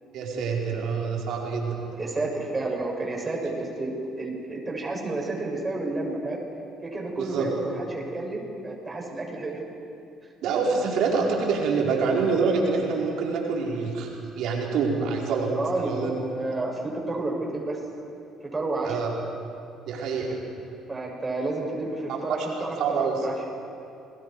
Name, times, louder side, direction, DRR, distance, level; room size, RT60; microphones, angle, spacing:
voice 1, 0.1-1.8 7.2-7.5 10.4-14.1 14.4-16.1 18.8-19.1 19.8-20.4 22.1-23.2, right 4 dB, 65° right, -2 dB, 4.4 m, -26 dB
voice 2, 2.0-6.4 6.8-9.6 15.6-17.8 18.5-19.0 20.9-23.3, right 2 dB, 25° right, -1 dB, 7.5 m, -30 dB
29.5 x 21.0 x 4.8 m, 2.6 s
hypercardioid pair, 55°, 0 cm